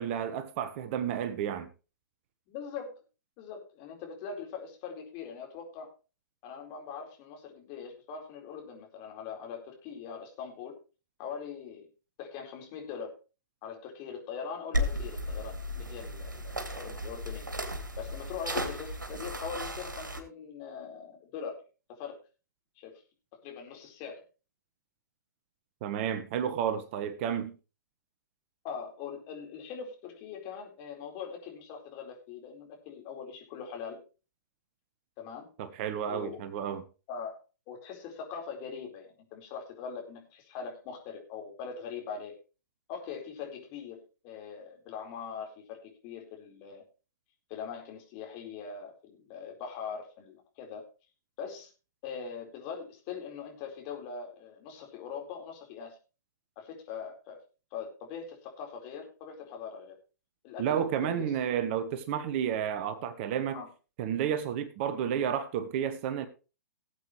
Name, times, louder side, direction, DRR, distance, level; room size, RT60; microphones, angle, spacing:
voice 1, 0.0-1.7 25.8-27.5 35.6-36.8 60.6-63.6 64.0-66.3, right 9 dB, 40° right, 1.3 m, -31 dB
voice 2, 2.5-3.0 3.4-5.9 6.4-10.8 11.2-11.9 12.2-13.2 13.6-17.5 18.0-21.6 22.0-22.1 22.8-22.9 23.4-24.2 28.6-34.0 35.2-35.5 36.0-36.5 37.1-37.3 37.7-42.3 42.9-44.0 44.2-46.8 47.5-50.8 51.4-51.7 52.0-56.0 56.6-57.4 57.7-59.9 60.4-61.3 63.5-63.7, left 6 dB, 35° left, 4.4 m, -41 dB
sound 1, 14.7-20.2, equal, 85° right, 2.7 m, -35 dB
18.5 x 8.2 x 3.2 m
figure-of-eight pair, 120°, 10 cm